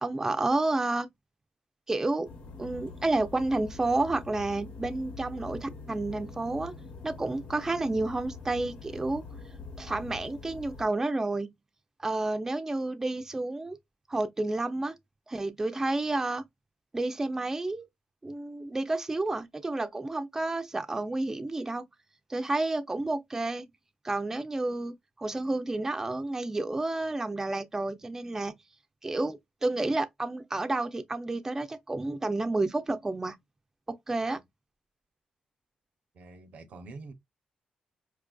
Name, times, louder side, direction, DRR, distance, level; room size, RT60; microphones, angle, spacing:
voice 1, 0.0-1.1 1.9-2.3 2.6-6.7 7.0-9.2 9.8-11.5 12.0-13.8 14.1-14.9 15.3-16.4 16.9-17.9 18.2-21.8 22.3-23.6 24.0-28.6 29.0-33.4 33.9-34.4, right 2 dB, 20° right, 0.4 m, -30 dB
sound 1, 2.2-10.8, left 4 dB, 70° left, 1.0 m, -44 dB
voice 2, 36.1-37.1, right 3 dB, 70° right, 0.6 m, -45 dB
4.5 x 2.4 x 2.2 m
cardioid pair, 90°, 3 cm